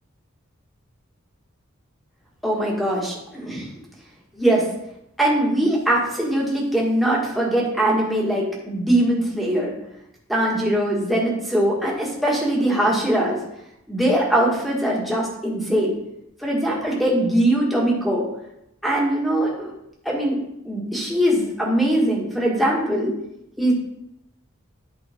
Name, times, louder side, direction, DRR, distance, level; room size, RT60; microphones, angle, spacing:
voice 1, 2.4-3.7 4.3-4.6 5.2-9.7 10.3-13.4 13.9-15.9 16.4-18.2 18.8-19.7 20.0-23.1 23.6-23.7, right 1 dB, ahead, -4 dB, 1.7 m, -21 dB
10.0 x 5.1 x 3.6 m, 0.81 s
head